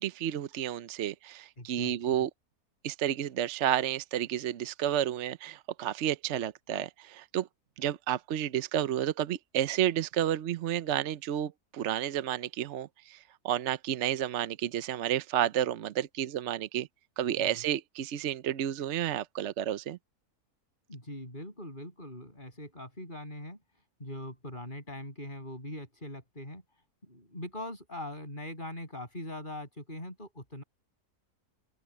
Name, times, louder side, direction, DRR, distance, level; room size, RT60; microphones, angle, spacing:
voice 1, 0.0-2.3 2.8-7.5 7.8-13.2 13.4-16.9 17.2-20.0, right 11 dB, 60° right, 0.8 m, -31 dB
voice 2, 1.6-2.2 17.4-17.6 20.9-23.6 24.0-26.6 27.0-30.6, left 1 dB, 30° left, 8.3 m, -42 dB
open air
omnidirectional pair, 1.6 m